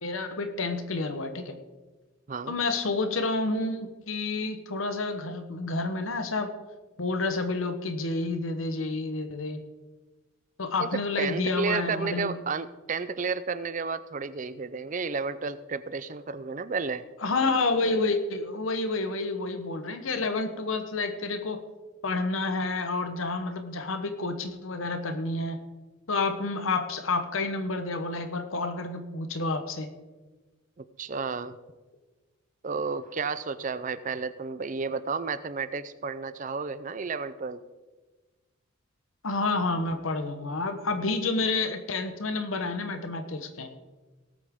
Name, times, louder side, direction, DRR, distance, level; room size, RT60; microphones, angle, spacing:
voice 1, 0.0-1.6 2.5-6.5 7.0-9.6 10.6-12.3 17.2-21.6 22.0-25.6 26.1-29.9 39.2-43.7, left 3 dB, 80° left, 8 dB, 1.0 m, -29 dB
voice 2, 10.8-17.0 30.8-31.6 32.6-37.6, right 4 dB, 40° right, 14 dB, 0.5 m, -32 dB
18.5 x 8.5 x 3.6 m, 1.2 s
head